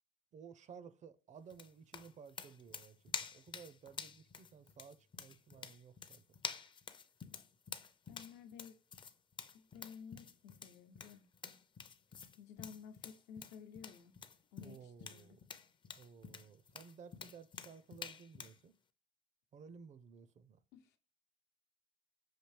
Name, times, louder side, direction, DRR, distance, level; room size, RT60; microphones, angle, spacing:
voice 1, 0.3-6.2 14.6-15.5 15.9-18.7 19.5-20.6, right 6 dB, 45° right, 0.5 m, -56 dB
sound 1, 1.5-18.6, left 6 dB, 30° left, 0.4 m, -49 dB
voice 2, 8.1-8.7 9.5-11.5 12.4-14.1 14.5-15.4 20.7-21.0, left 7 dB, 80° left, 0.7 m, -54 dB
5.9 x 2.7 x 3.2 m
cardioid pair, 110°, 17 cm